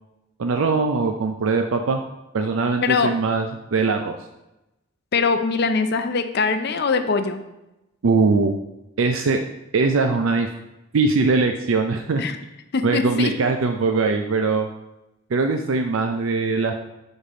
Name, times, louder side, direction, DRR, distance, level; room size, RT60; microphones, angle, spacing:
voice 1, 0.4-2.0 2.3-4.1 8.0-8.5 9.0-9.4 9.7-10.5 10.9-12.2 12.8-14.7 15.3-16.7, right 4 dB, 75° right, 5 dB, 0.5 m, -21 dB
voice 2, 2.8-3.1 5.1-7.4 12.2-12.4 12.7-13.3, left 4 dB, 55° left, 9 dB, 0.5 m, -22 dB
5.0 x 4.3 x 6.0 m, 0.94 s
head